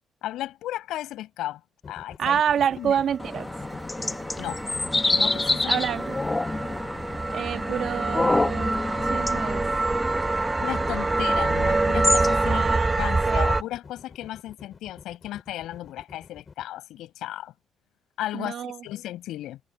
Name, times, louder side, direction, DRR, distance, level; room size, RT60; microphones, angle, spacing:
voice 1, 0.2-1.6 1.9-2.4 2.8-3.0 4.4-4.6 5.1-5.8 10.6-12.6 13.0-17.5 18.2-19.6, left 14 dB, 85° left, 6.1 m, -34 dB
sound 1, 1.8-16.7, left 5 dB, 40° left, 6.3 m, -46 dB
voice 2, 2.2-3.5 5.7-6.2 7.3-8.7 9.1-9.6 12.4-13.0 13.3-13.4 18.3-18.8, right 8 dB, 65° right, 1.9 m, -27 dB
sound 2, 3.1-13.6, right 3 dB, 20° right, 1.5 m, -26 dB
sound 3, 3.2-12.8, left 2 dB, 20° left, 2.0 m, -28 dB
cardioid pair, 90°, 0 cm